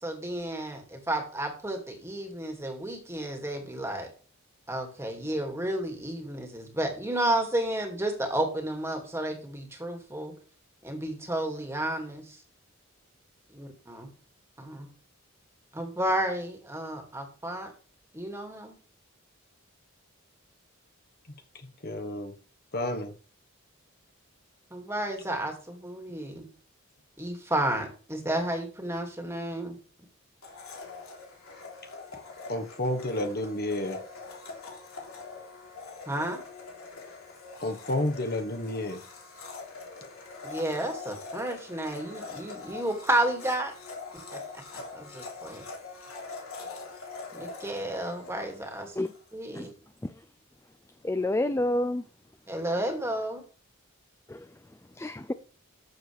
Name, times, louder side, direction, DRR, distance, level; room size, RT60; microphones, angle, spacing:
voice 1, 0.0-4.1 4.7-10.3 10.8-12.4 13.5-14.1 14.6-14.9 15.7-17.7 18.1-18.8 24.7-26.5 27.2-29.8 36.1-36.4 40.4-43.7 44.1-44.4 44.7-45.6 47.3-49.0 49.3-49.7 52.5-53.4, right 1 dB, 10° right, 2.2 m, -32 dB
voice 2, 21.8-22.3 22.7-23.1 32.5-34.0 37.6-39.0, left 1 dB, 45° left, 1.3 m, -30 dB
Domestic sounds home sounds, 30.4-49.2, left 4 dB, 85° left, 3.6 m, -43 dB
voice 3, 51.0-52.0 54.3-54.5 55.0-55.3, left 1 dB, 10° left, 0.4 m, -28 dB
13.0 x 7.3 x 3.4 m
head